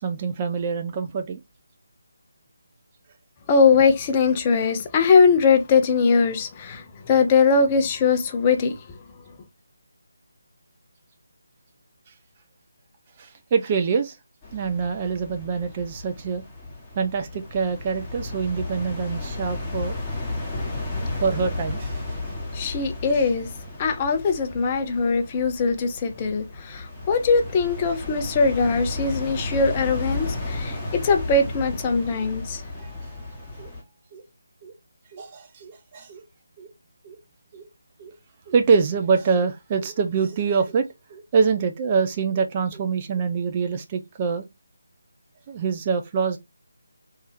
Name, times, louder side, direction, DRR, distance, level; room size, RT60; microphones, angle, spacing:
voice 1, 0.0-1.4 13.2-14.2 14.5-16.4 17.0-19.9 21.2-22.2 32.8-33.7 34.1-34.2 34.6-34.7 35.1-36.2 36.6-36.7 37.0-37.2 37.5-37.7 38.0-38.1 38.5-44.5 45.5-46.4, right 5 dB, 25° right, 0.4 m, -25 dB
voice 2, 3.5-8.8 22.5-23.5 23.8-32.6, left 4 dB, 25° left, 0.6 m, -21 dB
sound 1, 14.4-33.8, left 2 dB, 5° left, 1.1 m, -33 dB
3.3 x 2.8 x 3.3 m
figure-of-eight pair, 155°, 0 cm